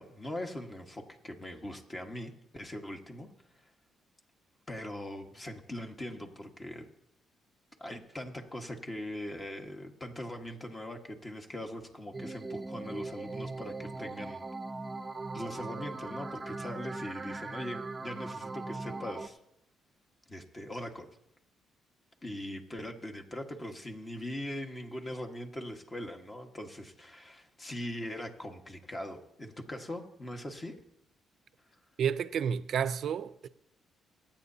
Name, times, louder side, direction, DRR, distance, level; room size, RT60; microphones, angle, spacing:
voice 1, 0.0-3.7 4.7-6.9 7.8-14.4 15.3-19.4 20.3-21.1 22.2-30.8, left 1 dB, 25° left, 1.6 m, -41 dB
sound 1, 12.1-19.3, right 3 dB, 25° right, 0.7 m, -40 dB
voice 2, 32.0-33.5, right 8 dB, 65° right, 0.5 m, -30 dB
25.5 x 8.9 x 2.8 m
cardioid pair, 90°, 0 cm